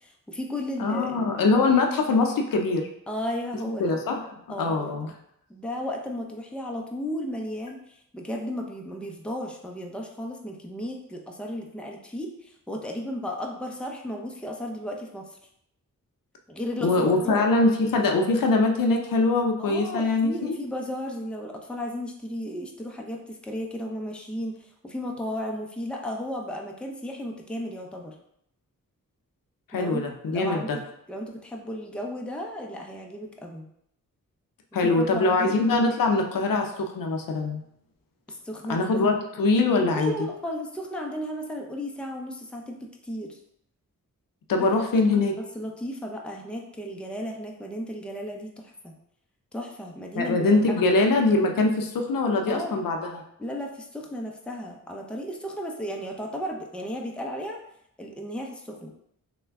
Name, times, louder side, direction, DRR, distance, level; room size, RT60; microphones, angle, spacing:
voice 1, 0.0-1.3 3.1-3.9 4.5-5.0 5.5-15.2 16.5-17.4 19.6-28.1 29.7-30.0 30.3-30.8 31.1-33.7 34.8-35.6 38.3-38.9 39.9-42.8 43.0-43.4 44.6-44.7 45.5-48.9 49.5-50.8 52.5-52.8 53.4-57.6 58.0-58.9, equal, 5° left, 0 dB, 0.5 m, -34 dB
voice 2, 0.8-2.9 3.8-4.1 4.6-5.1 16.8-20.5 29.7-30.8 34.7-37.6 38.7-40.1 44.5-45.4 50.1-53.2, left 3 dB, 75° left, 3 dB, 0.5 m, -23 dB
3.2 x 2.2 x 3.4 m, 0.74 s
cardioid pair, 60°, 34 cm